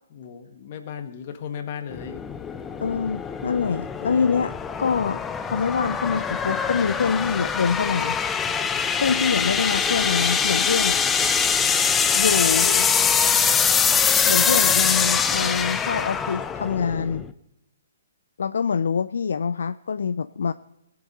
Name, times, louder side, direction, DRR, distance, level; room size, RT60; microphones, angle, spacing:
voice 1, 0.1-2.2, left 8 dB, 45° left, 6 dB, 1.7 m, -36 dB
sound 1, 1.9-17.3, left 6 dB, 15° left, 0.6 m, -23 dB
voice 2, 2.8-8.2 8.9-11.0 12.2-12.9 14.2-17.2 18.4-20.5, left 6 dB, 70° left, 14 dB, 0.4 m, -25 dB
18.5 x 7.7 x 5.4 m, 0.88 s
figure-of-eight pair, 130°, 0 cm